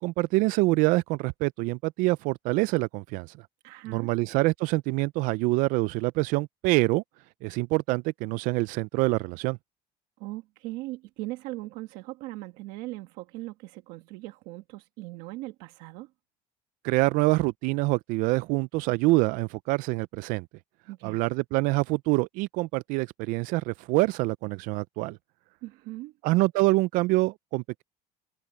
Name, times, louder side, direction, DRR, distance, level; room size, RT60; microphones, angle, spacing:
voice 1, 0.0-3.4 3.9-7.0 7.4-9.6 16.8-20.5 21.0-25.2 26.2-27.8, right 22 dB, 70° right, 0.4 m, -25 dB
voice 2, 3.6-4.1 10.2-16.1 20.9-21.2 25.6-26.1, right 19 dB, 85° right, 1.3 m, -39 dB
cardioid pair, 170°, 14 cm